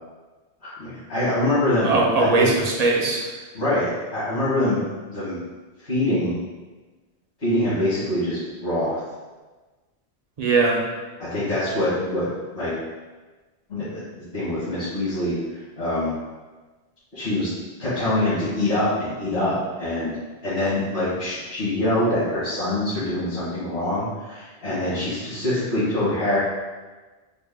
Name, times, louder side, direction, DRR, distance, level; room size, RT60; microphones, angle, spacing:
voice 1, 0.6-2.5 3.5-4.8 5.1-5.4 5.8-6.4 7.4-9.0 11.2-12.3 12.5-12.7 13.7-16.1 17.1-17.5 17.8-20.2 20.4-26.4, left 1 dB, 75° left, -15 dB, 1.7 m, -24 dB
voice 2, 1.8-3.4 10.4-10.8, right 3 dB, 45° right, -2 dB, 0.5 m, -20 dB
3.9 x 2.1 x 3.5 m, 1.3 s
omnidirectional pair, 1.2 m